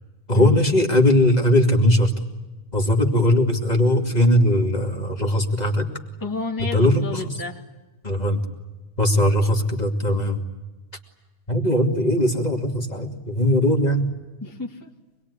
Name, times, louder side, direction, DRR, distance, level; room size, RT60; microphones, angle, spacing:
voice 1, 0.3-2.1 2.7-5.9 6.7-7.3 8.0-8.4 9.0-10.4 11.5-14.0, left 1 dB, 35° left, 1 dB, 2.8 m, -19 dB
voice 2, 6.2-7.6 14.4-14.9, left 3 dB, 15° left, -3 dB, 2.3 m, -31 dB
26.0 x 21.0 x 9.9 m, 1.1 s
omnidirectional pair, 1.3 m